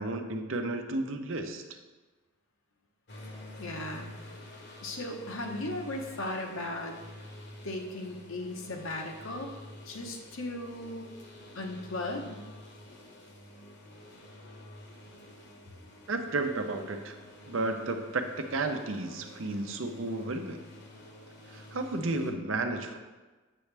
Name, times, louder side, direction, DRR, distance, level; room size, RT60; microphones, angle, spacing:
voice 1, 0.0-1.6 16.1-17.2 17.5-20.6 21.5-23.0, right 2 dB, 70° right, 6 dB, 0.7 m, -32 dB
sound 1, 3.1-22.3, left 1 dB, 50° left, 1.1 m, -49 dB
voice 2, 3.6-4.1 4.8-7.0 7.6-9.5 9.8-11.1 11.5-12.4, left 2 dB, 75° left, 2 dB, 1.1 m, -37 dB
7.6 x 7.1 x 3.4 m, 1.2 s
head